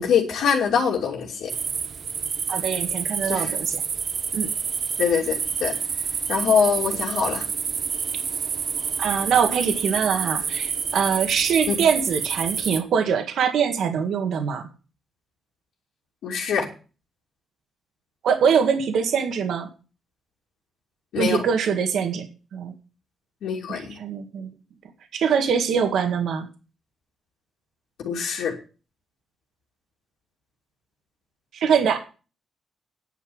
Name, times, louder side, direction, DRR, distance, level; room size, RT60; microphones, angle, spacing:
voice 1, 0.0-1.5 3.2-3.5 5.0-5.7 6.3-7.4 11.7-11.8 16.2-16.7 21.1-21.4 23.4-24.0 28.0-28.5, left 6 dB, 85° left, -3 dB, 2.8 m, -23 dB
sound 1, 1.5-12.8, right 6 dB, 45° right, 0.7 m, -28 dB
voice 2, 2.5-3.8 4.3-4.5 9.0-14.7 18.2-19.7 21.2-22.7 23.7-24.5 25.1-26.5 31.5-32.0, right 7 dB, 70° right, 5 dB, 1.9 m, -23 dB
10.0 x 7.1 x 7.8 m, 0.35 s
wide cardioid pair, 155°, 0 cm